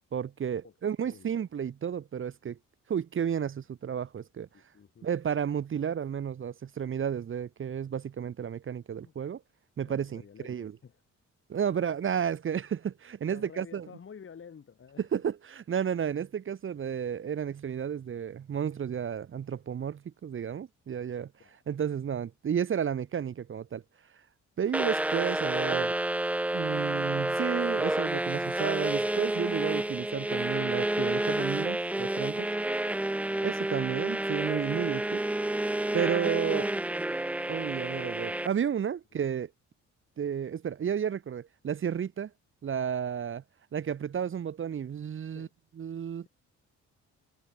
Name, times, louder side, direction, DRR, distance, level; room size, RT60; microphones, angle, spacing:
voice 1, 0.1-2.6 2.9-4.5 5.0-9.4 9.8-10.7 11.5-13.9 15.1-21.3 21.7-23.8 24.6-25.9 26.5-32.5 33.4-35.2 35.9-36.7 37.5-39.5 40.2-42.3 42.6-43.4 43.7-45.5 45.8-46.3, right 8 dB, 45° right, 1.0 m, -32 dB
voice 2, 4.5-5.1 9.0-9.1 9.9-11.0 13.3-15.1 21.4-21.6 33.3-34.0 45.3-45.5 46.2-46.3, left 6 dB, 45° left, 4.6 m, -51 dB
sound 1, 24.7-38.5, right 1 dB, 5° right, 0.4 m, -30 dB
cardioid pair, 90°, 30 cm